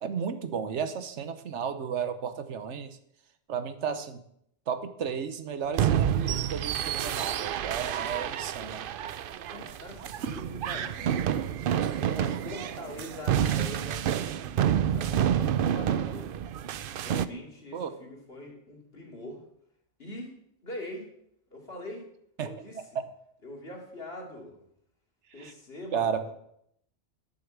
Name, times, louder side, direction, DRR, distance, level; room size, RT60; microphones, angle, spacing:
voice 1, 0.0-3.0 3.5-4.2 4.7-8.8 17.7-18.0 22.4-22.5 22.9-23.0 25.4-25.5 25.9-26.3, right 7 dB, 75° right, 11 dB, 1.2 m, -33 dB
sound 1, 5.7-17.3, right 9 dB, 60° right, 0.6 m, -29 dB
voice 2, 9.5-11.3 12.0-16.4 17.0-19.4 20.0-20.4 20.6-21.0 21.5-22.0 22.4-22.8 23.4-24.6 25.3-26.3, left 1 dB, 55° left, -1 dB, 2.8 m, -42 dB
10.5 x 6.6 x 7.3 m, 0.72 s
omnidirectional pair, 1.2 m